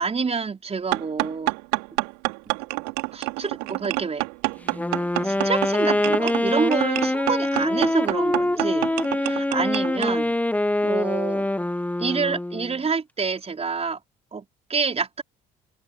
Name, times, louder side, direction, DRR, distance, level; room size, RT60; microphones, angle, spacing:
voice 1, 0.0-1.5 1.9-2.0 3.1-4.2 5.2-8.9 9.2-10.4 10.8-11.5 12.0-14.0 14.3-15.2, right 5 dB, 30° right, 5.1 m, -27 dB
sound 1, 0.9-10.2, right 27 dB, 80° right, 4.0 m, -28 dB
Wind instrument woodwind instrument, 4.7-12.8, left 1 dB, 5° left, 1.2 m, -24 dB
hypercardioid pair, 65°, 21 cm